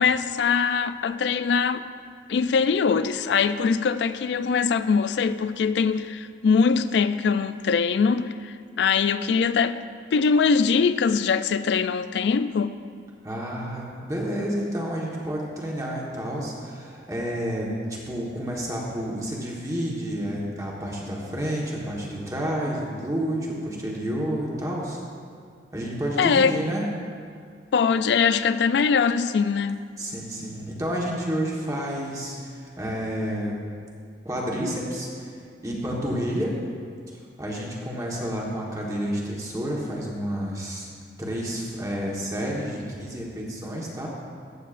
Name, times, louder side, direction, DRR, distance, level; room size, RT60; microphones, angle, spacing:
voice 1, 0.0-1.9 2.3-9.8 10.1-12.8 26.2-26.6 27.7-29.8, left 5 dB, 70° left, 0.3 m, -22 dB
voice 2, 13.2-25.0 25.7-26.9 30.0-33.6 34.2-35.3 35.6-36.6 37.1-40.8 41.2-44.1, equal, 20° right, 1.3 m, -30 dB
14.5 x 8.0 x 2.5 m
head